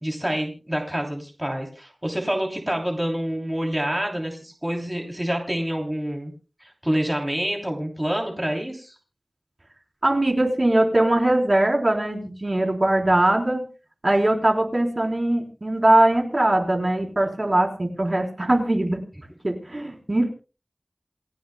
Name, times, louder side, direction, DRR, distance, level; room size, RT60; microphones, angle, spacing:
voice 1, 0.0-6.3 6.6-8.9, equal, 15° right, 1 dB, 3.1 m, -27 dB
voice 2, 10.0-13.6 14.0-19.0 19.4-20.3, right 1 dB, 45° right, 1 dB, 3.9 m, -21 dB
28.5 x 10.5 x 2.2 m, 0.33 s
wide cardioid pair, 45°, 0 cm